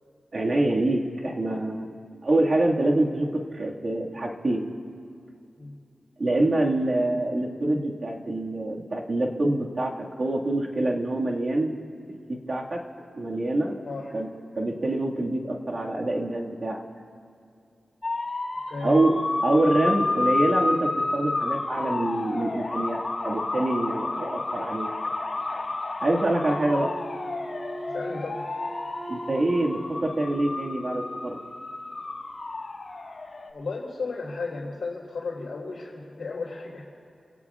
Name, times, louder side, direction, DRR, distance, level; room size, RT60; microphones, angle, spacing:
voice 1, 0.3-1.9 2.2-4.7 6.2-11.8 12.3-12.9 13.2-13.8 14.1-14.3 14.6-16.8 18.8-23.0 23.2-24.9 26.0-27.0 29.1-31.4, right 1 dB, 50° right, -1 dB, 1.9 m, -25 dB
sound 1, 18.0-33.5, left 2 dB, 55° left, 1.6 m, -30 dB
voice 2, 18.7-19.0 27.8-28.4 33.5-36.8, left 3 dB, 75° left, -8 dB, 3.4 m, -34 dB
Wind instrument woodwind instrument, 26.5-31.4, right 1 dB, 15° right, 1.9 m, -40 dB
28.0 x 16.5 x 2.4 m, 2.5 s
cardioid pair, 60°, 0 cm